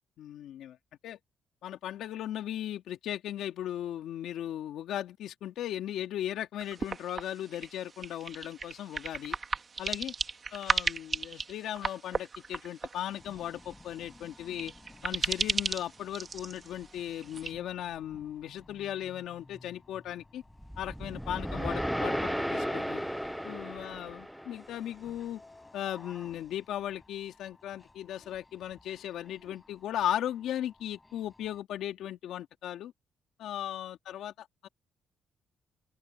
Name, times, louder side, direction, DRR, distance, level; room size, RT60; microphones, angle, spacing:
voice 1, 0.2-0.8 1.0-1.2 1.6-9.4 9.8-10.1 10.5-14.7 15.0-20.4 20.8-23.0 23.4-25.4 25.7-32.9 33.4-34.7, left 11 dB, 80° left, 2.7 m, -37 dB
sound 1, 6.6-17.5, right 5 dB, 35° right, 2.0 m, -36 dB
sound 2, 13.1-31.6, left 2 dB, 20° left, 7.4 m, -57 dB
sound 3, 20.6-24.9, equal, ahead, 0.6 m, -34 dB
open air
cardioid pair, 90°, 0 cm